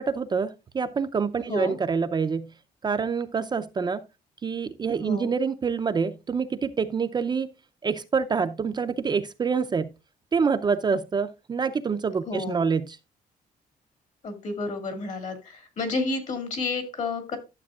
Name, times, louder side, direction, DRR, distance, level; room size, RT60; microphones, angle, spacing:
voice 1, 0.0-2.5 2.8-4.0 4.4-7.5 7.8-9.9 10.3-12.8, right 5 dB, 30° right, 0.5 m, -26 dB
voice 2, 5.0-5.3 12.3-12.7 14.2-17.4, left 3 dB, 55° left, 2.2 m, -31 dB
12.0 x 7.4 x 2.3 m
cardioid pair, 130°, 15 cm